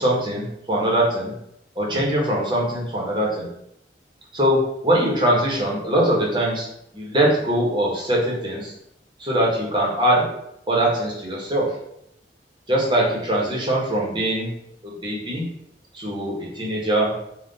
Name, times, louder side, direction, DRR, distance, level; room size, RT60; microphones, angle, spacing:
voice 1, 0.0-1.3 1.8-3.5 4.3-6.7 6.9-8.7 9.2-10.2 10.7-11.7 12.7-14.5 14.8-15.4 15.9-17.1, right 1 dB, 25° right, -3 dB, 1.0 m, -22 dB
3.7 x 2.4 x 3.9 m, 0.78 s
head